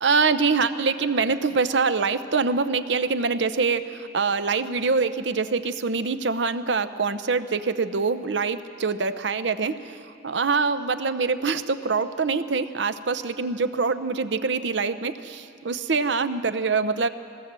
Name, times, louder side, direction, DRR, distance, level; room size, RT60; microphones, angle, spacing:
voice 1, 0.0-17.1, right 4 dB, 70° right, 11 dB, 0.8 m, -24 dB
20.5 x 17.0 x 7.6 m, 2.4 s
head